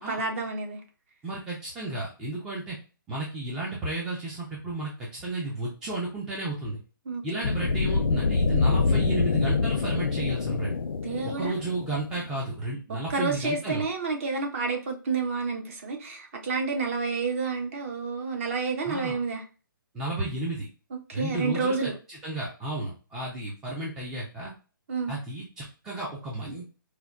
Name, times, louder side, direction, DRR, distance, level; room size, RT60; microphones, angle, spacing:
voice 1, 0.1-0.8 7.1-7.4 11.0-11.5 12.9-19.4 20.9-21.9 24.9-25.1, right 4 dB, 35° right, 3 dB, 0.7 m, -30 dB
voice 2, 1.2-2.8 3.1-6.8 7.2-10.7 11.2-13.9 18.8-19.2 19.9-20.7 21.1-21.9 22.2-24.5 25.1-26.7, right 2 dB, 5° right, -5 dB, 0.3 m, -33 dB
sound 1, 7.4-12.4, left 4 dB, 85° left, 0.5 m, -26 dB
4.3 x 2.1 x 2.4 m, 0.35 s
hypercardioid pair, 160°, 12 cm